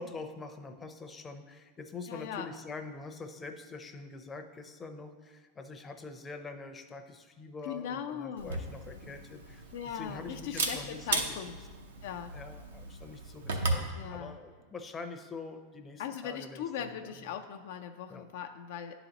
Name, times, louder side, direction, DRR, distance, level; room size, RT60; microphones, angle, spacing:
voice 1, 0.0-11.4 12.3-16.9 18.1-18.3, left 3 dB, 20° left, 6 dB, 0.6 m, -45 dB
voice 2, 2.1-2.5 7.6-8.6 9.7-11.6 12.0-12.4 13.9-14.4 16.0-18.9, left 8 dB, 70° left, 6 dB, 0.4 m, -39 dB
Camera, 8.4-13.9, right 3 dB, 90° right, 0.7 m, -36 dB
10.5 x 3.9 x 2.9 m, 1.5 s
hypercardioid pair, 110°, 0 cm